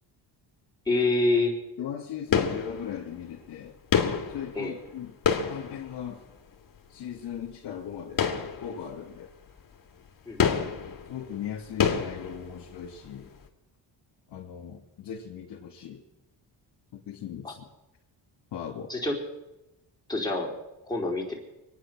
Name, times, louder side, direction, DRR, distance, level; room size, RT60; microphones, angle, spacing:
voice 1, 0.9-1.5 4.5-4.7 10.3-10.4 17.4-17.5 18.9-19.2 20.1-20.5 20.9-21.3, left 2 dB, 10° left, -3 dB, 4.1 m, -26 dB
voice 2, 1.8-3.8 4.3-5.1 5.5-6.2 6.9-8.3 8.6-9.3 11.1-13.3 14.3-16.0 16.9-17.6 18.5-18.9, left 9 dB, 65° left, -3 dB, 2.4 m, -38 dB
sound 1, 2.3-3.2 3.9-6.5 8.1-9.1 9.5-9.6 10.4-13.0 13.2-13.3, left 7 dB, 45° left, 1.9 m, -28 dB
25.0 x 9.5 x 6.1 m, 0.97 s
cardioid pair, 115°, 46 cm